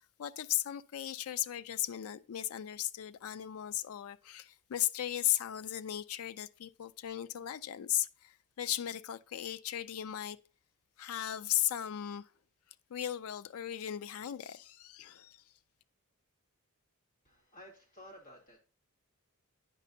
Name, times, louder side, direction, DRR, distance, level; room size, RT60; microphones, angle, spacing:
voice 1, 0.2-10.4 11.0-12.2 12.9-15.4, left 12 dB, 65° left, 0.4 m, -36 dB
voice 2, 17.2-18.6, equal, 40° left, 2.0 m, -53 dB
9.1 x 5.3 x 2.6 m
head